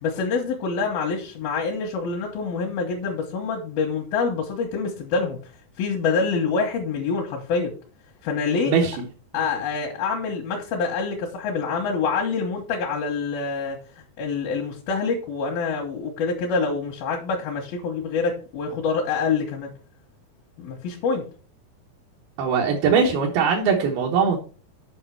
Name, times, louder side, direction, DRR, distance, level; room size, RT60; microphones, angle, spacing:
voice 1, 0.0-5.4 5.8-7.7 8.2-8.7 9.3-19.7 20.6-21.2, left 5 dB, 85° left, 0 dB, 3.1 m, -26 dB
voice 2, 22.4-24.4, right 6 dB, 85° right, -1 dB, 3.2 m, -20 dB
8.7 x 5.3 x 4.6 m, 0.36 s
omnidirectional pair, 4.2 m